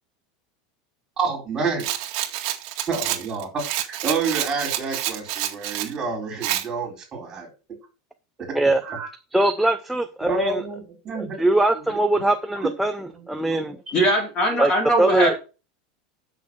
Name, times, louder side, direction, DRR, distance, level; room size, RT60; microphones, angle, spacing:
voice 1, 1.2-1.9 2.9-3.6 3.9-7.5 8.8-9.1 10.2-11.4 12.6-12.7 13.5-13.8, right 4 dB, 20° right, 1 dB, 4.1 m, -28 dB
Rattle, 1.8-5.9 6.4-6.7, right 13 dB, 45° right, 1.8 m, -28 dB
voice 2, 9.3-10.6 11.1-13.8 14.6-14.7 15.0-15.4, right 2 dB, ahead, 5 dB, 0.6 m, -22 dB
voice 3, 13.9-15.4, equal, 25° left, 2 dB, 3.7 m, -21 dB
8.3 x 6.4 x 6.1 m, 0.32 s
supercardioid pair, 165°, 3 cm